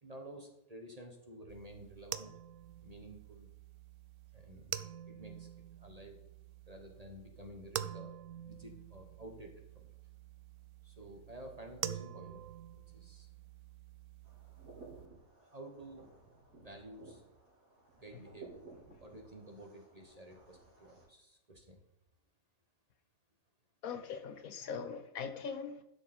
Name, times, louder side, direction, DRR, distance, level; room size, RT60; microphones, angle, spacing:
voice 1, 0.0-2.3 2.8-3.5 4.3-5.5 5.8-6.2 6.7-8.1 8.4-9.9 10.8-12.4 12.7-13.3 15.4-16.1 16.5-17.2 17.9-18.6 19.0-21.8, right 1 dB, 25° right, 3 dB, 1.1 m, -51 dB
sound 1, 1.5-15.1, right 11 dB, 70° right, 0.8 m, -47 dB
sound 2, 14.2-21.1, right 3 dB, 90° right, 3.7 m, -57 dB
voice 2, 23.8-25.8, left 6 dB, 70° left, 9 dB, 1.1 m, -41 dB
11.5 x 6.6 x 4.3 m, 0.85 s
omnidirectional pair, 1.6 m